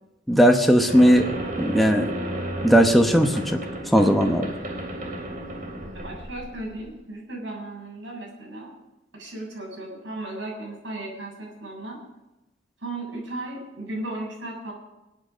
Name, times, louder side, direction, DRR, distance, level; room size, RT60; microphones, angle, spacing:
voice 1, 0.3-1.3 1.6-2.1 2.6-3.6 3.9-4.5, equal, ahead, 2 dB, 1.0 m, -17 dB
sound 1, 0.9-6.9, right 1 dB, 45° right, 3.0 m, -33 dB
voice 2, 5.9-8.7 9.1-12.0 12.8-14.7, right 2 dB, 70° right, -2 dB, 7.5 m, -35 dB
24.0 x 9.0 x 5.2 m, 0.96 s
head